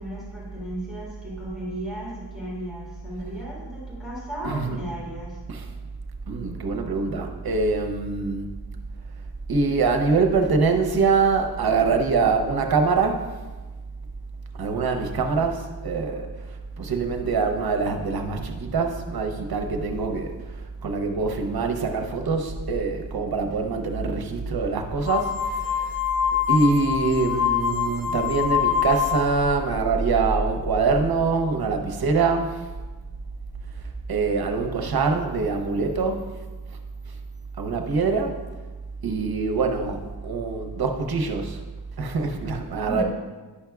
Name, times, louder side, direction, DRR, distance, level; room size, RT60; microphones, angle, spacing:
voice 1, 0.0-5.4 42.9-43.0, equal, ahead, -7 dB, 1.8 m, -35 dB
voice 2, 4.4-4.8 5.5-5.7 6.3-8.5 9.5-13.3 14.6-16.3 16.8-26.0 26.5-32.7 34.1-36.2 37.6-38.4 39.0-41.6 42.0-43.0, right 4 dB, 60° right, 5 dB, 0.8 m, -24 dB
sound 1, 25.1-29.4, left 9 dB, 45° left, 2.1 m, -25 dB
9.6 x 5.7 x 2.3 m, 1.3 s
wide cardioid pair, 90°, 41 cm